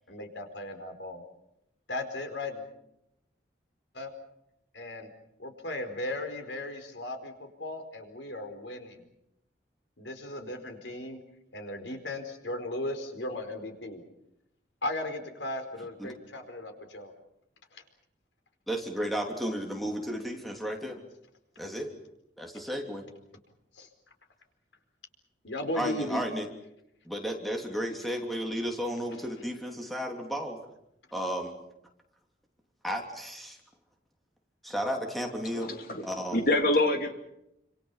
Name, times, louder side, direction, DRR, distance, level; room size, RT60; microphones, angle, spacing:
voice 1, 0.1-1.2 1.9-2.7 3.9-4.1 4.7-5.1 5.4-9.0 10.0-11.2 11.5-14.0 14.8-17.1 17.7-17.8 23.7-23.9 25.4-26.2, left 1 dB, 85° left, 6 dB, 4.7 m, -36 dB
voice 2, 18.7-21.0 21.6-21.9 22.4-23.1 25.7-26.5 27.0-30.6 31.1-31.6 32.8-33.6 34.6-35.7 36.0-36.5, equal, ahead, 2 dB, 3.2 m, -33 dB
voice 3, 35.5-37.1, left 1 dB, 50° left, 4 dB, 3.1 m, -26 dB
28.5 x 27.0 x 5.8 m, 0.82 s
head